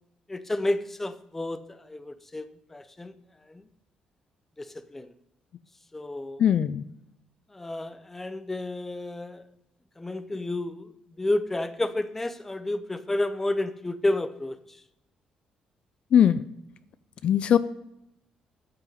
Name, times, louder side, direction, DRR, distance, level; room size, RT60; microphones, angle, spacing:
voice 1, 0.3-3.1 3.5-3.6 4.6-5.1 5.9-6.4 7.5-9.4 10.0-10.9 11.2-14.6, left 2 dB, 10° left, 12 dB, 0.7 m, -31 dB
voice 2, 6.4-6.8 16.1-16.4 17.2-17.6, left 9 dB, 55° left, 15 dB, 0.4 m, -20 dB
9.1 x 8.2 x 5.5 m, 0.83 s
cardioid pair, 145°, 2 cm